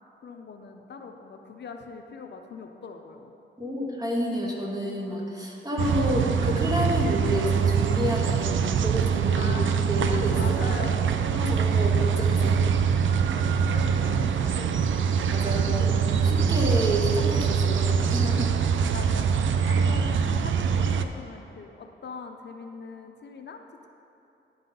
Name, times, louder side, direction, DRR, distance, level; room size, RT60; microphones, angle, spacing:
voice 1, 0.2-3.3 9.3-10.0 10.4-11.5 12.4-12.8 13.3-15.1 15.5-15.8 18.8-19.3 19.7-23.9, left 5 dB, 60° left, 4 dB, 0.5 m, -41 dB
voice 2, 3.6-9.5 9.9-10.4 11.3-12.6 13.1-13.2 14.0-14.2 15.3-18.6 19.7-19.8, equal, 20° right, -3 dB, 1.4 m, -30 dB
sound 1, 5.8-21.1, right 6 dB, 70° right, 0.4 m, -24 dB
10.5 x 4.0 x 5.4 m, 2.9 s
wide cardioid pair, 95°, 20 cm